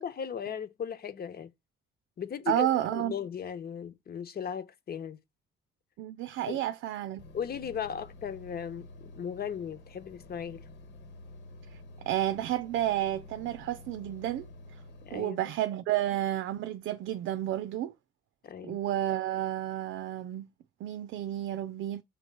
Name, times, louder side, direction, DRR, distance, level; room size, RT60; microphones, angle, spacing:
voice 1, 0.0-1.5 2.2-5.2 6.5-6.6 7.3-10.6 15.0-15.5 18.4-18.8, left 8 dB, 50° left, 1.1 m, -37 dB
voice 2, 2.5-3.1 6.0-7.2 11.7-14.5 14.7-14.8 15.1-17.9 18.6-20.5 20.8-22.0, right 13 dB, 85° right, 0.6 m, -31 dB
sound 1, 7.2-15.2, left 2 dB, 65° left, 1.4 m, -50 dB
7.5 x 3.1 x 5.4 m
cardioid pair, 90°, 20 cm